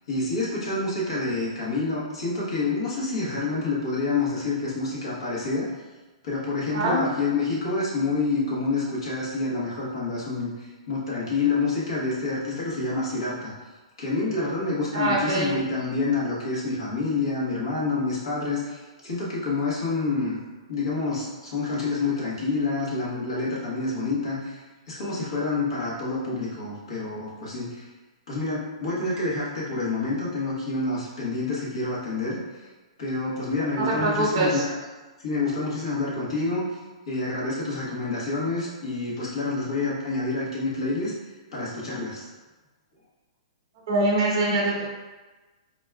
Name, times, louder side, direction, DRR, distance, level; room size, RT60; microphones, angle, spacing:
voice 1, 0.1-5.7 6.2-13.5 14.0-20.4 20.7-27.9 28.3-32.6 33.0-34.7 35.2-36.7 37.1-41.1 41.5-42.3, left 3 dB, 55° left, -6 dB, 1.3 m, -28 dB
voice 2, 6.7-7.0 14.9-15.5 33.8-34.6 43.9-44.9, right 2 dB, 30° right, -4 dB, 1.0 m, -23 dB
4.0 x 3.5 x 2.3 m, 1.2 s
hypercardioid pair, 180°, 4 cm